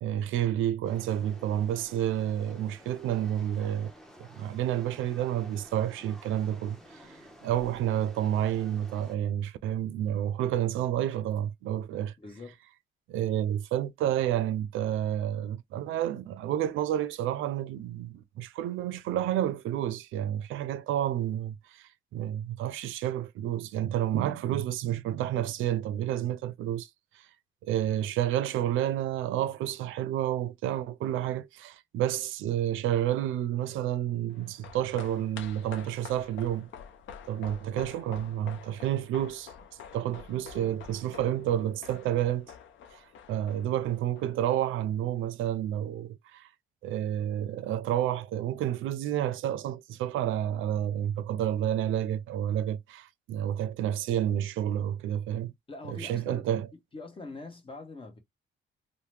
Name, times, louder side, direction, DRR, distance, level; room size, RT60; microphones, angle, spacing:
voice 1, 0.0-3.9 4.2-7.1 7.4-12.1 13.1-26.9 27.1-27.3 27.6-36.7 37.2-39.5 39.9-42.5 42.9-46.5 46.8-55.5 55.9-56.7, right 11 dB, 80° right, 0.4 m, -30 dB
sound 1, 0.8-9.2, equal, ahead, 0.7 m, -52 dB
voice 2, 12.2-12.5 55.7-56.5 56.9-58.2, left 3 dB, 25° left, 1.0 m, -43 dB
sound 2, 34.3-44.9 45.2-45.3, left 7 dB, 75° left, 0.6 m, -48 dB
2.8 x 2.1 x 3.2 m
cardioid pair, 90°, 20 cm